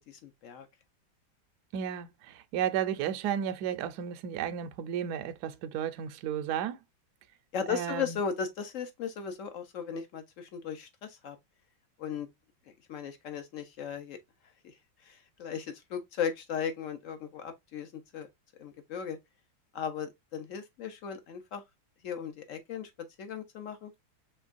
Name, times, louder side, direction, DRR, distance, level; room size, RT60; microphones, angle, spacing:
voice 1, 0.1-0.7 7.5-11.4 12.0-12.3 12.9-14.2 14.6-14.7 15.0-18.3 18.6-19.2 19.7-21.6 22.0-22.9 23.2-23.9, left 7 dB, 55° left, 0.9 m, -36 dB
voice 2, 1.7-6.8 7.7-8.2, right 9 dB, 70° right, 1.0 m, -33 dB
4.5 x 3.5 x 2.5 m
omnidirectional pair, 2.1 m